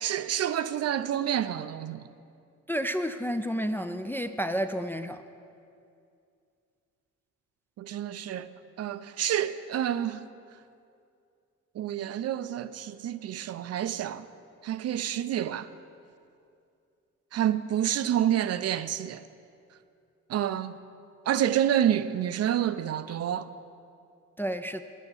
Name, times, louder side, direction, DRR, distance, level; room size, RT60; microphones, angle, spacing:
voice 1, 0.0-2.0 7.8-8.5 8.8-10.2 11.8-14.3 14.6-15.7 17.3-19.2 20.3-20.8 21.3-23.5, right 10 dB, 55° right, 0.5 m, -28 dB
voice 2, 2.7-5.2 24.4-24.8, equal, 5° left, 0.3 m, -30 dB
8.9 x 8.1 x 7.1 m
cardioid pair, 90°, 30 cm